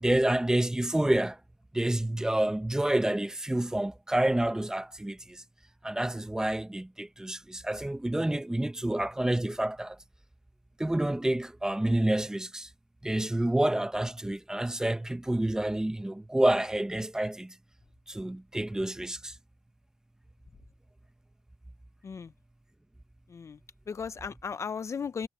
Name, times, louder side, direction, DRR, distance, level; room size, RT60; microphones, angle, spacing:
voice 1, 0.0-1.4 1.7-5.4 5.8-10.0 10.8-12.7 13.0-17.5 18.1-19.3, right 1 dB, 10° right, 0.8 m, -28 dB
voice 2, 23.9-25.3, left 6 dB, 45° left, 0.5 m, -36 dB
wide cardioid pair, 155°, 7 cm